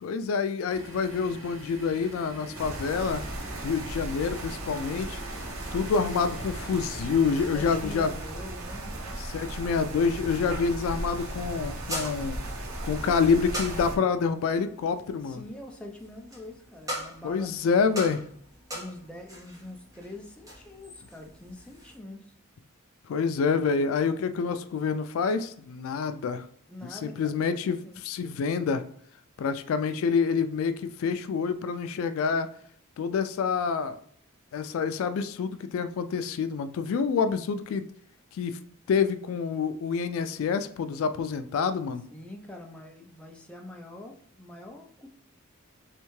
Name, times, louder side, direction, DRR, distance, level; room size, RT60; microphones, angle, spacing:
voice 1, 0.0-3.2 3.6-5.2 5.7-8.1 9.2-12.4 12.8-15.4 17.2-18.2 23.0-26.5 26.9-28.8 29.4-32.5 33.0-34.0 34.5-37.9 38.3-38.6 38.9-42.0, left 5 dB, 70° left, 11 dB, 0.3 m, -27 dB
sound 1, 0.7-7.9, equal, 65° right, 1.3 m, -45 dB
sound 2, 2.5-14.0, right 1 dB, 85° right, 0.8 m, -36 dB
voice 2, 7.5-9.2 15.2-17.7 18.7-22.3 26.7-28.0 42.1-45.1, left 1 dB, 5° left, 0 dB, 0.5 m, -44 dB
sound 3, 10.6-22.0, equal, 15° right, 1.1 m, -42 dB
3.5 x 3.3 x 3.1 m, 0.63 s
head